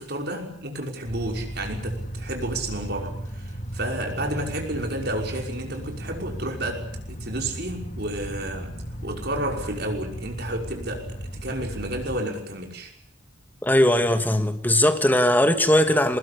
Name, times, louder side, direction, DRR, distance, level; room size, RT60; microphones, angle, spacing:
voice 1, 0.0-12.9, right 1 dB, 55° right, 5.7 m, -31 dB
sound 1, 1.0-12.2, equal, 40° left, 2.2 m, -35 dB
voice 2, 13.6-16.2, left 1 dB, 10° left, 2.1 m, -19 dB
24.0 x 20.5 x 8.5 m
head